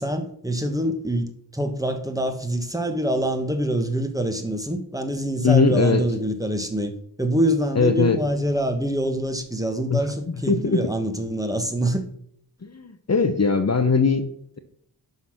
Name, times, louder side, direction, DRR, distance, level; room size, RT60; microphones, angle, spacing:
voice 1, 0.0-6.9 7.2-12.1, right 1 dB, 10° right, 1.2 m, -25 dB
voice 2, 5.4-6.0 7.8-8.2 9.9-10.0 10.5-10.9 12.6-14.2, left 4 dB, 40° left, 0.8 m, -20 dB
11.0 x 4.0 x 5.9 m
wide cardioid pair, 105°, 41 cm